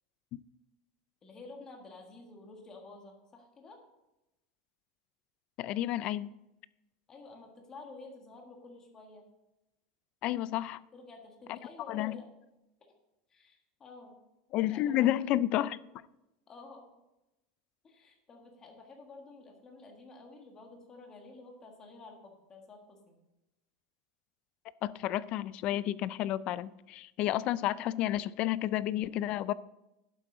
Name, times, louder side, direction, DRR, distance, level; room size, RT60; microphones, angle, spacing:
voice 1, 1.2-3.8 7.1-9.2 10.9-12.3 13.3-14.2 14.7-15.2 15.6-15.7 16.5-16.8 17.8-23.2, left 3 dB, 20° left, 2 dB, 1.6 m, -51 dB
voice 2, 5.6-6.3 10.2-10.8 11.5-11.6 11.9-12.2 14.5-15.8 24.8-29.5, left 13 dB, 35° left, 18 dB, 0.3 m, -31 dB
11.5 x 7.4 x 3.8 m, 0.94 s
supercardioid pair, 170°, 3 cm